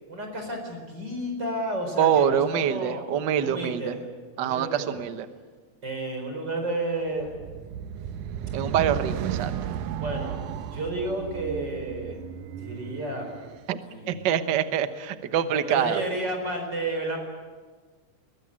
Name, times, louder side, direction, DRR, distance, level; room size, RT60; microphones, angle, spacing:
voice 1, 0.1-3.0 3.4-4.1 4.4-5.0 5.8-7.3 10.0-12.2 12.6-13.3 13.8-14.3 15.5-17.2, right 1 dB, 35° right, 4 dB, 5.1 m, -31 dB
voice 2, 2.0-4.0 4.4-5.3 8.5-9.5 13.7-13.8 14.1-16.0, right 9 dB, 55° right, 10 dB, 1.3 m, -25 dB
sound 1, 7.1-13.6, right 9 dB, 85° right, 2.3 m, -34 dB
22.5 x 21.5 x 8.8 m, 1.4 s
omnidirectional pair, 3.4 m